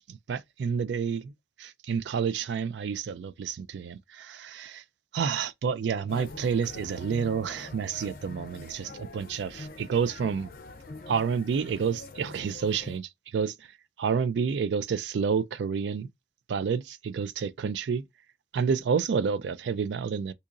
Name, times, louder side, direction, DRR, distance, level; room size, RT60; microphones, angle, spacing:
voice 1, 0.1-1.3 1.6-4.7 5.1-10.5 11.1-13.6 14.0-16.1 16.5-18.1 18.5-20.3, right 6 dB, 85° right, 0.3 m, -29 dB
sound 1, 6.1-13.0, left 2 dB, 50° left, 0.5 m, -44 dB
3.8 x 2.8 x 2.5 m
head